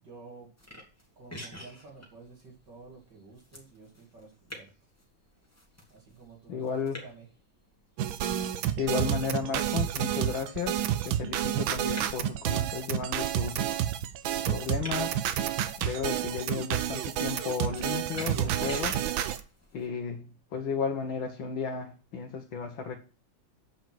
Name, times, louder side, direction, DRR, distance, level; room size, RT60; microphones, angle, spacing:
voice 1, 0.0-0.5 1.2-4.7 5.9-7.3, right 4 dB, 65° right, -2 dB, 3.2 m, -51 dB
sound 1, 0.6-19.9, equal, 10° left, 2.6 m, -49 dB
voice 2, 6.5-7.0 8.8-13.8 14.5-15.3 15.8-19.0 19.7-23.0, left 5 dB, 90° left, 1 dB, 2.1 m, -34 dB
sound 2, 8.0-19.4, right 11 dB, 90° right, 1.6 m, -30 dB
9.2 x 5.4 x 6.1 m, 0.33 s
omnidirectional pair, 2.1 m